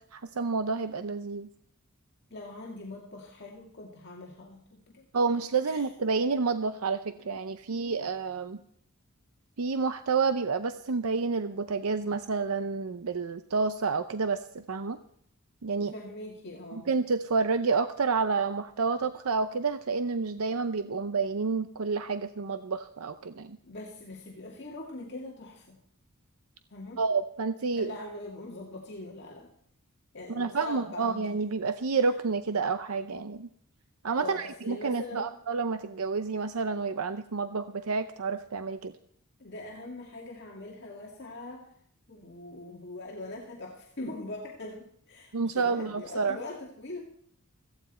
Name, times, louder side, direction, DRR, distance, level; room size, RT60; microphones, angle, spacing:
voice 1, 0.1-1.5 5.1-8.6 9.6-15.0 15.6-15.9 16.7-23.6 27.0-27.9 30.3-33.5 34.0-38.9 45.3-46.4, right 4 dB, 90° right, 10 dB, 0.7 m, -29 dB
voice 2, 2.3-5.1 5.6-5.8 15.8-16.9 23.6-25.8 26.7-27.0 27.7-29.5 30.1-31.2 34.1-35.3 39.4-41.7 42.1-47.0, left 2 dB, 50° left, -2 dB, 2.1 m, -42 dB
17.0 x 14.5 x 4.3 m, 0.67 s
head